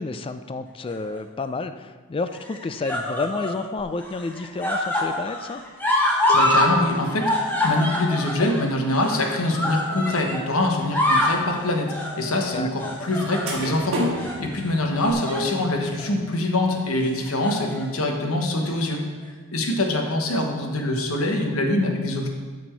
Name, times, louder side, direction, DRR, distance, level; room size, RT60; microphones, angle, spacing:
voice 1, 0.0-5.6 12.5-13.0, left 3 dB, 25° left, 11 dB, 0.3 m, -30 dB
sound 1, 0.9-1.4 2.3-3.6 4.0-6.7 7.0-10.5 10.8-11.4 11.9-12.2 12.8-13.8 14.2-14.4 15.0-15.5 15.9-16.1 17.2-17.8 18.7-18.8, left 1 dB, 10° left, 1.1 m, -25 dB
sound 2, 3.8-4.1 4.3-12.9 13.2-13.4 13.6-14.5 14.8-15.1, right 1 dB, 40° left, 1.0 m, -42 dB
voice 2, 6.3-7.3 7.6-19.1 19.5-22.3, left 1 dB, 75° left, 2 dB, 1.2 m, -24 dB
sound 3, 11.2-11.3 13.1-13.2 13.5-16.2, equal, 60° right, 1.8 m, -30 dB
12.5 x 4.3 x 4.5 m, 1.5 s
head